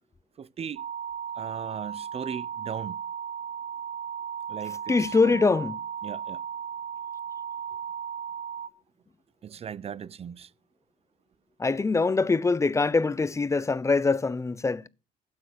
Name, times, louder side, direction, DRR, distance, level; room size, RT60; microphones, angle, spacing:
voice 1, 0.4-0.8 1.4-3.0 4.5-5.4 6.0-6.4 9.4-10.5, right 7 dB, 35° right, 0.7 m, -38 dB
sound 1, 0.8-8.7, right 8 dB, 75° right, 1.5 m, -36 dB
voice 2, 4.9-5.8 11.6-14.9, left 4 dB, 15° left, 0.7 m, -23 dB
12.5 x 9.2 x 6.4 m
cardioid pair, 110°, 17 cm